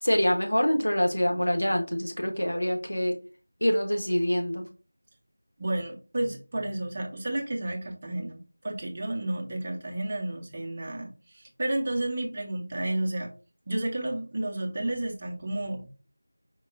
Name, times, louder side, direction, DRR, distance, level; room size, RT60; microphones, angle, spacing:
voice 1, 0.0-3.2 3.6-4.7, equal, 80° left, 3 dB, 1.0 m, -25 dB
voice 2, 5.6-13.3 13.7-15.9, right 1 dB, 30° right, 1 dB, 0.7 m, -31 dB
4.5 x 2.8 x 2.5 m, 0.35 s
figure-of-eight pair, 170°, 0 cm